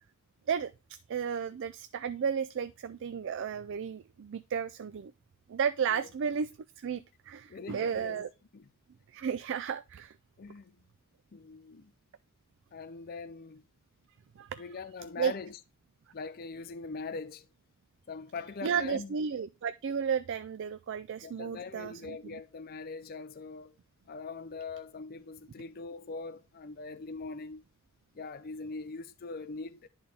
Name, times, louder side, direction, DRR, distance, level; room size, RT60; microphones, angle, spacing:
voice 1, 0.5-5.1 5.5-6.5 6.8-8.3 9.1-10.1 14.4-14.6 15.2-15.3 18.6-22.2, right 7 dB, 55° right, 0.4 m, -33 dB
voice 2, 7.5-8.3 8.5-8.7 10.4-10.8 11.3-11.9 12.7-13.6 14.6-15.6 16.1-17.5 18.1-19.2 21.2-23.8 24.1-27.6 28.1-29.9, left 4 dB, 45° left, 0.4 m, -42 dB
10.5 x 4.0 x 3.4 m
head